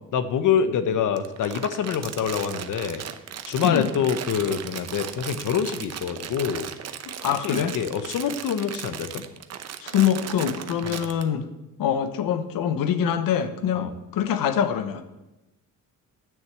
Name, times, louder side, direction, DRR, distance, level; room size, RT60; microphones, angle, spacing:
voice 1, 0.1-3.0 3.5-6.7 7.4-9.2 10.8-11.0 13.7-13.9, left 7 dB, 65° left, 11 dB, 1.0 m, -26 dB
Crumpling crinkling, 1.1-11.2, right 9 dB, 50° right, 0.8 m, -36 dB
voice 2, 7.0-7.8 9.8-11.5 11.8-15.0, left 9 dB, 90° left, 9 dB, 1.0 m, -24 dB
10.5 x 6.6 x 8.0 m, 1.0 s
cardioid pair, 145°, 33 cm